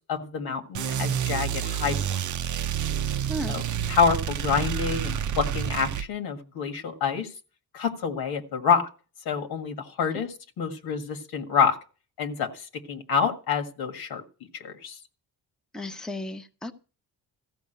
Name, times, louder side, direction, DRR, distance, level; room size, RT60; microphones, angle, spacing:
voice 1, 0.1-2.0 3.5-3.6 3.9-7.3 7.7-8.9 9.3-10.3 10.6-11.8 12.2-14.2 14.5-15.0, left 6 dB, 85° left, 6 dB, 1.9 m, -27 dB
sound 1, 0.7-6.1, right 9 dB, 55° right, 0.6 m, -29 dB
voice 2, 15.7-16.7, left 1 dB, ahead, 5 dB, 0.8 m, -34 dB
14.5 x 5.3 x 8.0 m, 0.36 s
cardioid pair, 120°, 36 cm